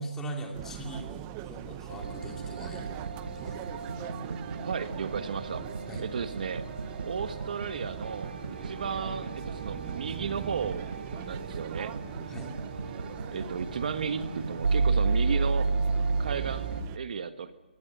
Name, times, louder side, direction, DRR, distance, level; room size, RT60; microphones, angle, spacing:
voice 1, 0.0-2.9 3.3-3.5 5.9-6.0 12.3-12.6, right 1 dB, 10° left, 2 dB, 2.8 m, -40 dB
sound 1, 0.5-17.0, right 12 dB, 20° right, 0.7 m, -42 dB
sound 2, 1.9-16.8, right 3 dB, 90° right, 3.1 m, -33 dB
voice 2, 4.5-5.6 6.0-6.7 7.0-8.3 8.6-10.9 11.3-12.0 13.3-15.7 16.2-17.5, right 6 dB, 55° right, 9 dB, 1.6 m, -34 dB
25.0 x 20.0 x 8.3 m, 1.3 s
hypercardioid pair, 165°, 5 cm